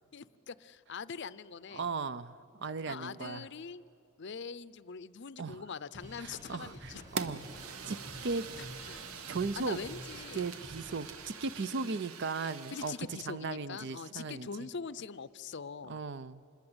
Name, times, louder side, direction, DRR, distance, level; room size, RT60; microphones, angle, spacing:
voice 1, 0.1-1.9 2.9-3.8 4.2-7.1 8.6-9.0 9.6-10.5 11.8-12.0 12.7-16.0, left 5 dB, 55° left, 16 dB, 0.6 m, -43 dB
voice 2, 1.7-2.4 2.6-3.5 5.4-5.6 6.2-7.4 7.9-8.0 8.2-8.4 9.3-9.8 10.3-12.9 13.3-14.5 15.9-16.4, right 4 dB, 55° right, 15 dB, 0.6 m, -36 dB
Drum kit, 5.9-11.1, equal, 35° right, 7.7 m, -49 dB
Fire, 7.2-13.1, right 6 dB, 85° right, 1.1 m, -44 dB
26.5 x 21.0 x 8.0 m, 2.7 s
head